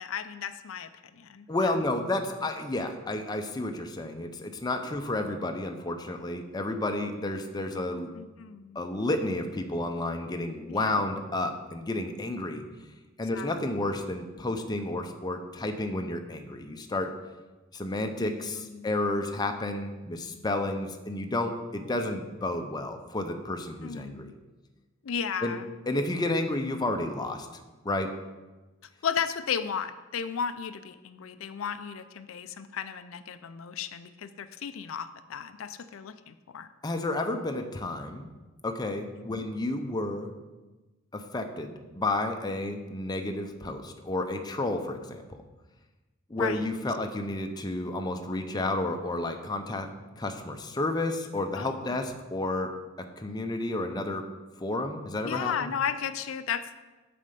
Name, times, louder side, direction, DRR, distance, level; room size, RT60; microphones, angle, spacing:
voice 1, 0.0-1.5 4.8-4.9 8.1-8.8 10.7-10.9 13.3-13.5 18.2-18.9 23.8-24.3 25.0-25.7 29.0-36.7 39.3-39.5 46.4-46.6 51.5-52.0 55.2-56.8, left 7 dB, 90° left, 11 dB, 0.4 m, -34 dB
voice 2, 1.5-8.1 8.7-12.6 13.2-17.1 17.7-24.3 25.4-25.6 25.9-27.5 27.8-28.1 36.8-38.3 38.6-40.3 41.1-45.2 46.3-49.9 50.2-52.7 53.0-54.3 54.6-55.7, left 2 dB, 20° left, 5 dB, 0.6 m, -31 dB
7.4 x 4.3 x 6.7 m, 1.2 s
head